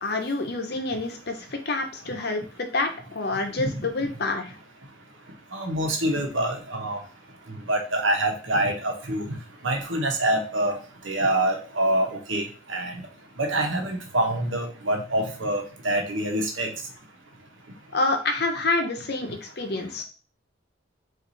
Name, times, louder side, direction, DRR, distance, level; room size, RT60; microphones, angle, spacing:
voice 1, 0.0-4.6 17.9-20.0, left 2 dB, 55° left, 5 dB, 0.8 m, -27 dB
voice 2, 5.5-7.0 7.5-9.3 9.6-10.8 11.0-12.4 12.7-13.0 13.4-16.7, right 1 dB, 80° right, 2 dB, 1.1 m, -25 dB
4.6 x 2.6 x 4.0 m, 0.36 s
head